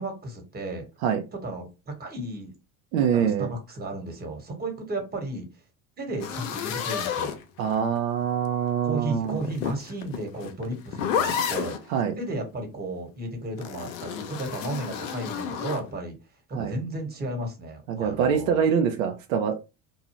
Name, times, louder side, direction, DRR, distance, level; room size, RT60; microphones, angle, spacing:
voice 1, 0.0-0.8 1.4-2.5 3.1-5.5 6.0-7.4 8.8-16.2 16.5-18.7, right 1 dB, 25° right, 1.3 m, -34 dB
voice 2, 2.9-3.5 7.6-9.4 11.9-12.1 16.5-16.8 17.9-19.6, right 7 dB, 75° right, 0.6 m, -24 dB
sound 1, 6.2-8.0 9.2-11.8 13.6-15.9, left 8 dB, 75° left, 0.7 m, -31 dB
2.7 x 2.3 x 2.9 m
hypercardioid pair, 80°, 41 cm